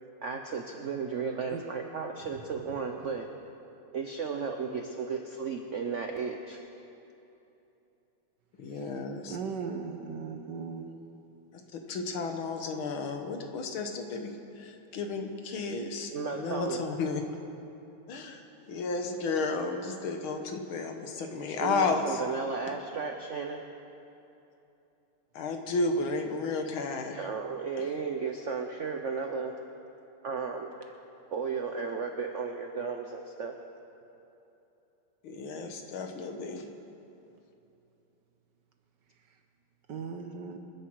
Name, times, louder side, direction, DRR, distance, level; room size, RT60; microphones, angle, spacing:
voice 1, 0.2-3.3 3.9-6.6 16.1-16.8 21.6-23.6 27.2-29.5 30.2-30.7 31.3-33.6, right 5 dB, 80° right, 4 dB, 0.6 m, -34 dB
voice 2, 8.6-9.4 11.5-17.2 18.1-18.4 18.7-22.2 25.4-27.3 35.2-36.7, left 3 dB, 70° left, 5 dB, 1.9 m, -33 dB
voice 3, 9.3-10.9 39.9-40.6, right 5 dB, 60° right, 5 dB, 1.5 m, -37 dB
25.5 x 10.0 x 4.7 m, 2.9 s
omnidirectional pair, 2.4 m